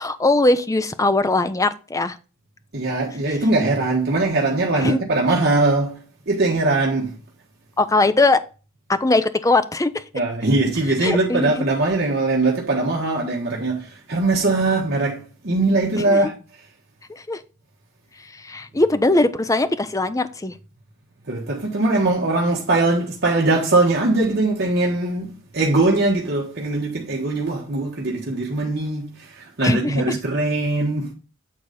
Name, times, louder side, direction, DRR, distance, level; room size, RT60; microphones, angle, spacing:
voice 1, 0.0-2.2 4.8-5.0 7.8-8.4 8.9-10.0 11.0-11.7 16.1-16.3 17.1-17.4 18.3-20.5 29.6-30.2, left 2 dB, 15° left, 0.5 m, -20 dB
voice 2, 2.7-7.1 10.1-16.3 21.3-31.1, right 2 dB, 50° right, 1.3 m, -21 dB
8.8 x 4.0 x 4.9 m
head